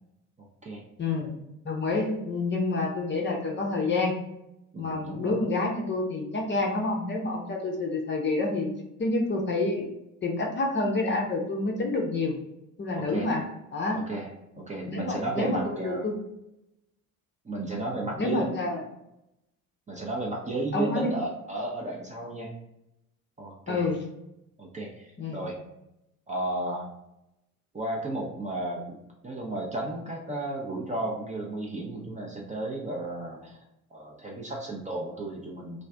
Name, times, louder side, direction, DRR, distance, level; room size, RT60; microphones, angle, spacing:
voice 1, 0.4-0.8 4.7-5.3 13.0-13.3 13.9-14.3 14.6-16.1 17.4-18.7 19.9-22.5 23.4-23.9 24.6-25.6 26.3-26.9 27.7-29.0 29.2-33.6 33.9-35.9, right 2 dB, 15° right, -2 dB, 0.6 m, -33 dB
voice 2, 1.0-1.4 1.6-4.2 4.8-8.7 9.0-9.9 10.2-12.4 12.8-13.4 13.7-14.0 14.9-16.2 18.2-18.8 20.7-21.1 23.7-24.0 25.2-25.4, left 2 dB, 25° left, 0 dB, 0.7 m, -28 dB
2.4 x 2.4 x 3.3 m, 0.87 s
hypercardioid pair, 60°, 43 cm